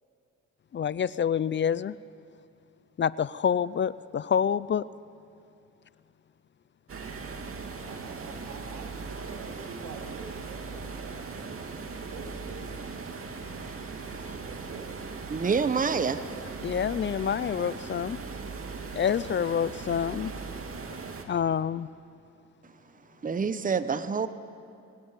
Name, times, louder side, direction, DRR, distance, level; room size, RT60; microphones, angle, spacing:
voice 1, 0.7-2.0 3.0-4.8 16.6-18.2 19.0-20.3 21.3-21.9, left 8 dB, 40° left, 18 dB, 0.5 m, -27 dB
sound 1, 6.9-21.2, right 4 dB, 45° right, 2.6 m, -39 dB
voice 2, 7.8-11.5 12.1-12.7 14.4-15.0, right 5 dB, 85° right, 4 dB, 2.7 m, -46 dB
voice 3, 15.3-16.2 23.2-24.3, right 5 dB, 25° right, 12 dB, 1.1 m, -27 dB
24.0 x 17.0 x 9.6 m, 2.6 s
cardioid pair, 90°, 30 cm